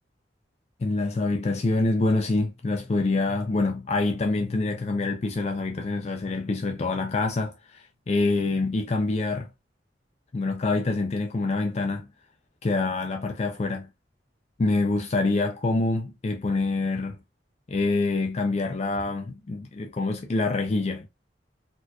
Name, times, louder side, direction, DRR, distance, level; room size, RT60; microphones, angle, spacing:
voice 1, 0.8-9.5 10.3-12.1 12.6-13.9 14.6-17.2 17.7-21.1, left 3 dB, 35° left, 0.4 m, -26 dB
4.2 x 2.8 x 2.2 m
head